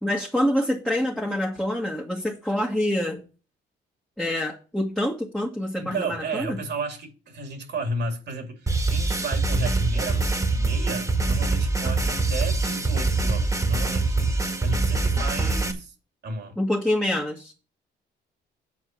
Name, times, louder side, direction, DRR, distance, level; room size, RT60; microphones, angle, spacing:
voice 1, 0.0-3.2 4.2-6.6 11.8-11.9 16.6-17.5, left 1 dB, 5° left, 1.8 m, -26 dB
voice 2, 5.8-15.9 16.2-16.6, right 2 dB, 60° right, 2.7 m, -33 dB
sound 1, 8.7-15.7, right 3 dB, 15° right, 2.0 m, -24 dB
8.3 x 4.4 x 7.2 m
cardioid pair, 90°, 20 cm